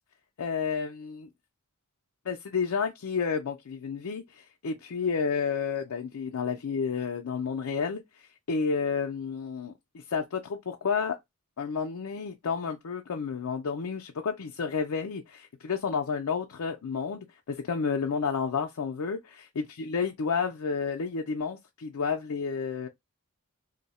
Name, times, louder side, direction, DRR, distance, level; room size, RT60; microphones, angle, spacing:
voice 1, 0.4-1.3 2.3-8.0 8.5-11.2 11.6-22.9, left 5 dB, 85° left, 0.5 m, -31 dB
2.7 x 2.2 x 4.1 m
head